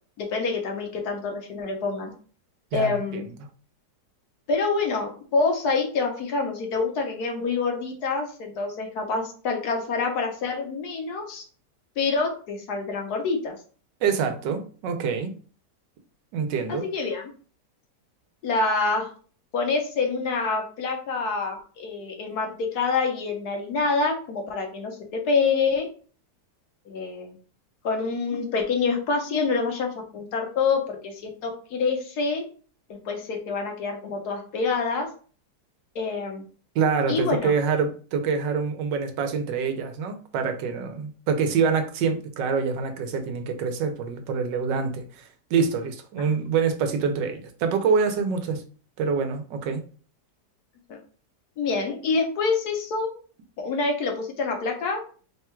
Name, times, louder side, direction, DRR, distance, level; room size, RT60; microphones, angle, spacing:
voice 1, 0.2-2.1 2.7-3.3 4.5-11.4 12.0-13.6 16.7-17.3 18.4-19.1 19.5-25.9 26.9-27.4 27.8-32.4 32.9-35.1 35.9-36.4 37.1-37.5 46.2-46.3 50.9-51.0 51.6-53.1 53.6-55.0, left 4 dB, 70° left, 2 dB, 1.3 m, -26 dB
voice 2, 2.7-3.2 14.0-15.3 16.3-16.8 36.7-48.6 49.0-49.8, right 5 dB, 85° right, 6 dB, 1.4 m, -26 dB
3.6 x 2.3 x 4.3 m, 0.40 s
omnidirectional pair, 1.9 m